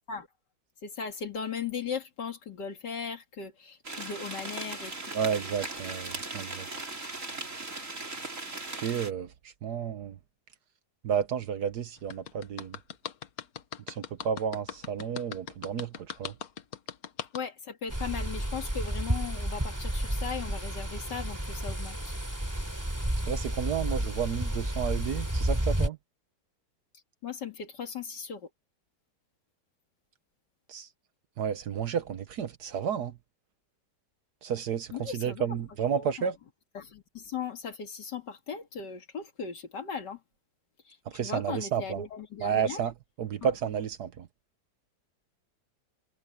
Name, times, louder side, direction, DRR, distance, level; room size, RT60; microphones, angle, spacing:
voice 1, 0.8-5.3 17.3-22.2 27.2-28.5 34.9-35.5 35.9-36.3 36.7-40.2 40.8-42.8 43.4-43.5, left 6 dB, 80° left, 2.6 m, -38 dB
sound 1, 3.8-9.1, right 2 dB, 45° right, 4.2 m, -38 dB
voice 2, 5.1-6.7 8.7-9.3 9.6-10.1 11.0-12.8 13.9-15.9 16.2-16.3 23.3-26.0 30.7-30.9 31.4-33.1 34.4-36.4 41.1-42.0 42.4-42.9 43.2-44.3, right 8 dB, 70° right, 1.4 m, -31 dB
sound 2, 12.1-17.4, left 8 dB, 60° left, 1.5 m, -39 dB
sound 3, 17.9-25.9, right 1 dB, 10° right, 2.9 m, -31 dB
omnidirectional pair, 1.8 m